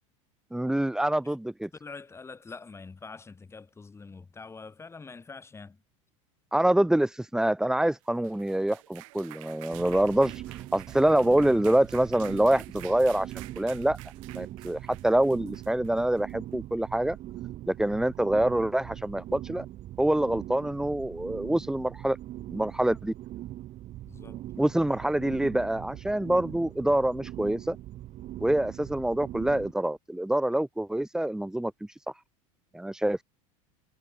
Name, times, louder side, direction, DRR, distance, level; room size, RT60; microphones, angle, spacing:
voice 1, 0.5-1.7 6.5-10.3 10.7-13.3 13.6-14.0 14.3-17.2 17.7-19.6 20.0-22.2 22.5-23.1 24.6-27.8 28.4-31.7 32.7-33.2, right 1 dB, 5° right, 1.4 m, -26 dB
voice 2, 1.7-5.8 24.1-24.4, left 4 dB, 15° left, 3.8 m, -45 dB
sound 1, 8.0-16.3, right 24 dB, 75° right, 2.2 m, -50 dB
sound 2, 9.7-29.7, right 14 dB, 40° right, 1.6 m, -42 dB
supercardioid pair, 120°, 17 cm